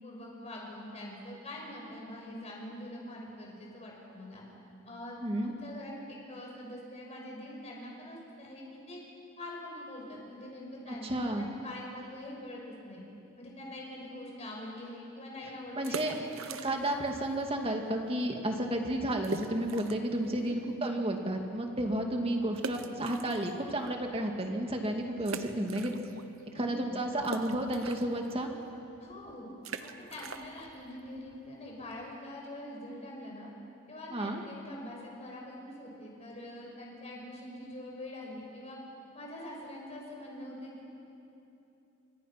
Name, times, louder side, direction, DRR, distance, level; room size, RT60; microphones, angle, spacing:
voice 1, 0.0-4.4 4.9-5.2 5.4-9.0 9.4-13.0 13.4-16.2 20.4-20.8 26.5-27.0 29.0-29.5 29.8-33.5 33.9-38.8 39.1-40.9, left 1 dB, 30° left, -2 dB, 5.9 m, -44 dB
voice 2, 5.2-5.6 10.9-11.5 15.7-16.2 16.5-25.9 26.6-28.5 34.1-34.4, right 1 dB, 25° right, 2 dB, 2.1 m, -32 dB
sound 1, 15.7-17.1 17.3-17.4 18.0-18.2 18.4-18.5 19.2-20.2 20.6-20.7 22.6-23.9 24.4-24.5 25.2-26.4 26.7-32.2, right 4 dB, 70° right, 1.1 m, -43 dB
28.5 x 25.0 x 5.9 m, 2.9 s
head